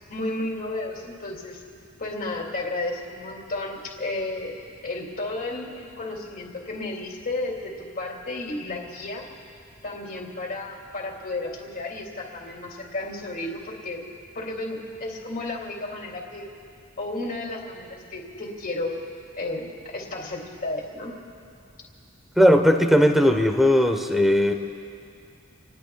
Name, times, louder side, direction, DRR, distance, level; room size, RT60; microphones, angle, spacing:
voice 1, 0.1-1.6 2.0-9.2 9.8-14.0 14.3-16.5 17.0-19.0 19.4-21.1, left 2 dB, 45° left, -1 dB, 2.6 m, -33 dB
voice 2, 22.4-24.5, equal, ahead, 5 dB, 1.0 m, -18 dB
28.5 x 20.0 x 2.4 m, 2.4 s
head